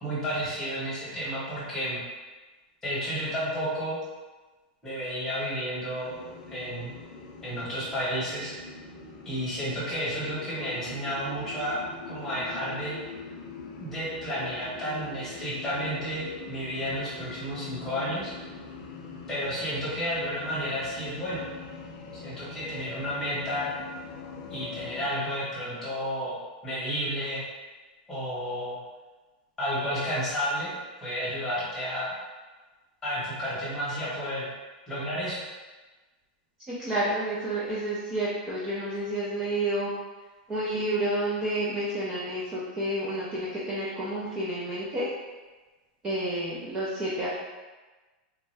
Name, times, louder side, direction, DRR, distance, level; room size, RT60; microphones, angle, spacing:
voice 1, 0.0-2.0 2.8-4.0 4.8-6.1 6.5-6.9 7.4-8.5 9.2-13.0 13.7-18.3 19.3-21.4 22.2-23.7 24.5-26.4 26.6-27.4 28.1-28.8 29.6-30.7 31.0-32.1 33.0-34.5 34.9-35.4, equal, 10° left, -9 dB, 1.1 m, -31 dB
sound 1, 6.0-25.1, left 4 dB, 50° left, 0.5 m, -43 dB
voice 2, 36.7-39.9 40.5-45.1 46.0-47.3, right 1 dB, 15° right, -8 dB, 0.4 m, -30 dB
3.5 x 2.1 x 3.2 m, 1.3 s
supercardioid pair, 170°, 5 cm